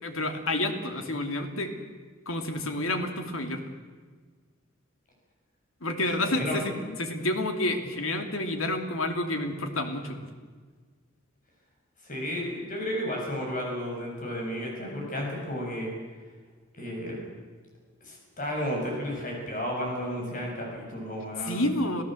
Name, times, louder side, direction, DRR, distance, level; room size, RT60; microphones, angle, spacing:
voice 1, 0.0-1.7 2.3-3.6 5.8-10.3 21.4-22.0, left 1 dB, 80° left, 5 dB, 2.7 m, -29 dB
voice 2, 6.2-6.6 12.0-15.9 16.7-17.2 18.0-21.6, equal, 40° left, -1 dB, 7.5 m, -33 dB
27.0 x 16.0 x 7.8 m, 1.5 s
head